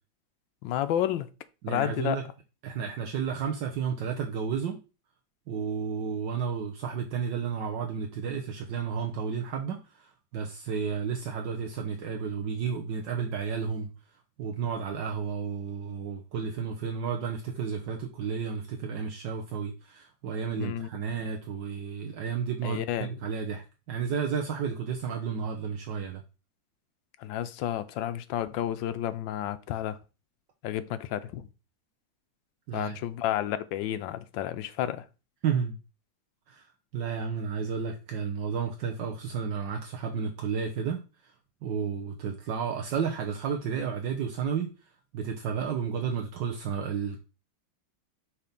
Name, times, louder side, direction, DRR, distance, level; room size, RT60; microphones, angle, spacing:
voice 1, 0.6-1.3 1.7-2.2 20.6-20.9 22.6-23.1 27.2-30.0 30.6-31.5 32.7-35.1, left 11 dB, 80° left, 1.3 m, -31 dB
voice 2, 1.6-2.2 2.6-4.8 5.5-13.9 14.4-26.2 32.7-33.0 35.4-35.8 36.5-36.7 36.9-41.3 41.6-44.7 45.1-47.2, right 6 dB, 70° right, 1.4 m, -32 dB
5.8 x 4.2 x 5.2 m
omnidirectional pair, 2.1 m